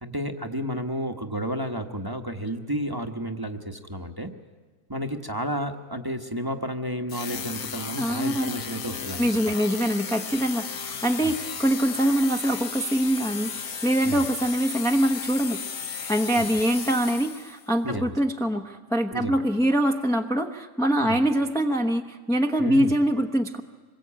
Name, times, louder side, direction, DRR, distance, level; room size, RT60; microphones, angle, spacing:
voice 1, 0.0-4.3 4.9-9.6 11.2-11.3 14.0-14.2 17.8-18.2 19.1-19.4 21.0-21.2 22.6-22.9, equal, 15° right, 5 dB, 1.1 m, -31 dB
sound 1, 7.1-17.6, left 6 dB, 60° left, 1.5 m, -35 dB
voice 2, 8.0-8.6 9.2-15.6 16.1-23.6, right 1 dB, 5° left, 3 dB, 0.7 m, -24 dB
26.0 x 21.5 x 8.8 m, 1.4 s
omnidirectional pair, 1.7 m